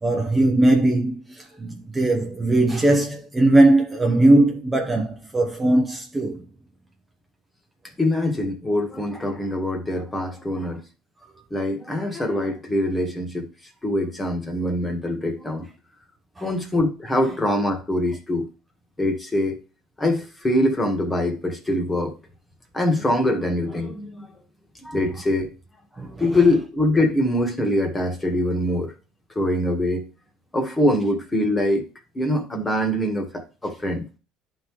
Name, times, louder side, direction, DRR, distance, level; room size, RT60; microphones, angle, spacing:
voice 1, 0.0-6.5 16.4-16.5 26.0-26.4, right 2 dB, 15° right, 0.8 m, -19 dB
voice 2, 8.0-10.8 11.5-13.5 13.8-15.7 16.4-18.5 19.0-19.5 20.0-22.1 22.7-24.3 24.8-25.5 26.2-28.9 29.3-30.0 30.5-31.9 32.1-34.1, left 1 dB, 15° left, 1.6 m, -23 dB
11.0 x 3.8 x 3.1 m
cardioid pair, 120°, 0 cm